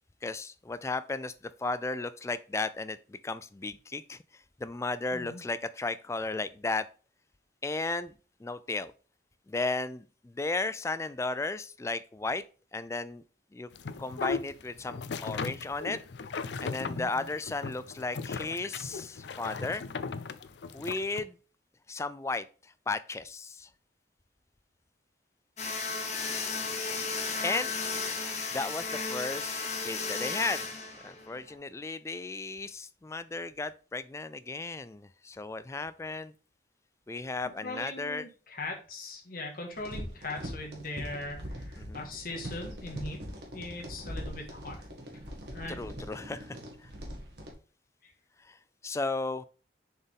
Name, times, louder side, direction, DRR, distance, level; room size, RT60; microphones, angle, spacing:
voice 1, 0.2-4.2 4.6-6.9 7.6-8.1 8.4-8.9 9.5-12.4 12.7-13.2 13.5-13.7 14.0-16.0 16.6-19.8 20.7-21.4 21.9-23.7 27.4-27.7 28.5-30.7 31.0-36.3 37.1-38.3 41.8-42.1 45.7-46.9 48.4-48.6 48.8-49.5, left 3 dB, 15° left, 0.3 m, -35 dB
sound 1, 13.7-21.2, left 4 dB, 80° left, 0.5 m, -37 dB
sound 2, 25.6-31.5, left 4 dB, 40° left, 1.3 m, -34 dB
voice 2, 37.6-43.2 43.5-44.8 45.5-45.8, left 2 dB, 55° left, 1.6 m, -40 dB
sound 3, 39.7-47.5, equal, 70° right, 1.7 m, -42 dB
6.9 x 4.4 x 3.5 m
head